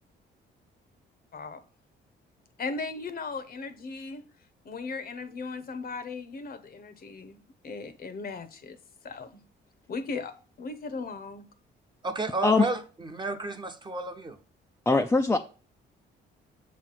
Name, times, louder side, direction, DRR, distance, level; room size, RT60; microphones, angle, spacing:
voice 1, 2.6-4.2 4.6-8.8 9.0-9.4 9.9-11.4, left 4 dB, 50° left, 0.8 m, -37 dB
voice 2, 12.0-14.4, right 3 dB, 20° right, 0.8 m, -32 dB
voice 3, 14.9-15.4, left 3 dB, 10° left, 0.4 m, -21 dB
6.7 x 3.2 x 5.7 m
cardioid pair, 90°, 20 cm